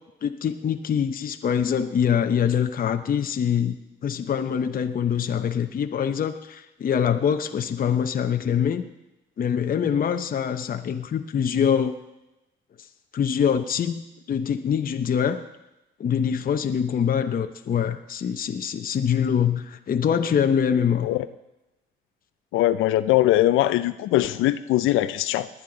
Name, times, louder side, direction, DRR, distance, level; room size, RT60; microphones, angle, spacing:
voice 1, 0.2-3.8 4.0-8.8 9.4-12.0 13.1-14.0 14.3-15.4 16.0-21.1, left 8 dB, 45° left, 7 dB, 0.8 m, -24 dB
voice 2, 22.5-25.5, left 14 dB, 90° left, 13 dB, 0.5 m, -21 dB
19.5 x 10.5 x 3.9 m, 0.95 s
cardioid pair, 90°, 20 cm